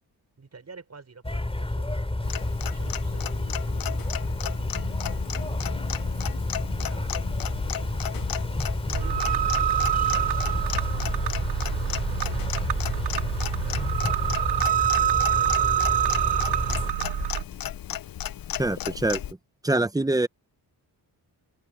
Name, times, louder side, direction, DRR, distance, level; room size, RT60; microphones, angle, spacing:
voice 1, 0.4-4.1 5.3-6.3 6.6-10.9 11.8-14.3 14.9-17.7, right 4 dB, 40° right, 5.5 m, -50 dB
sound 1, 1.2-16.9, left 2 dB, 15° left, 3.9 m, -30 dB
Clock, 2.2-19.3, left 10 dB, 60° left, 0.8 m, -35 dB
sound 2, 8.9-17.4, right 11 dB, 85° right, 0.9 m, -26 dB
voice 2, 18.6-19.2 19.6-20.3, right 2 dB, 10° right, 1.0 m, -24 dB
cardioid pair, 80°, 39 cm